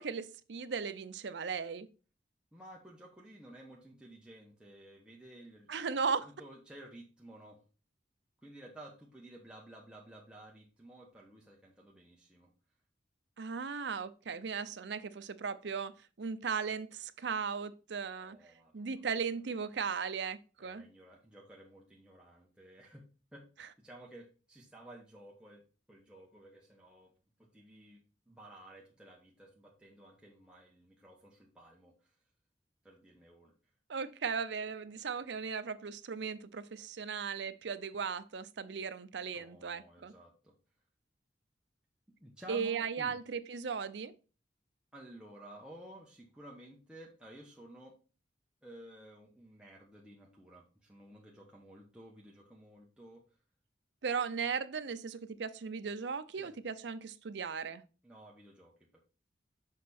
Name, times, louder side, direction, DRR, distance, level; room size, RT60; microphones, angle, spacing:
voice 1, 0.0-1.9 5.7-6.3 13.4-18.4 18.7-20.9 33.9-40.1 42.5-44.1 54.0-57.8, right 6 dB, 70° right, 0.6 m, -37 dB
voice 2, 2.5-5.7 6.2-7.6 8.4-12.5 18.1-18.8 20.6-23.0 23.3-23.4 23.8-25.6 25.9-27.1 27.4-28.0 28.3-32.1 32.8-33.5 39.3-40.5 42.2-43.2 44.9-47.9 48.6-53.2 54.1-54.2 56.4-56.5 58.0-59.0, right 1 dB, 5° right, 1.1 m, -54 dB
6.6 x 5.1 x 4.2 m
head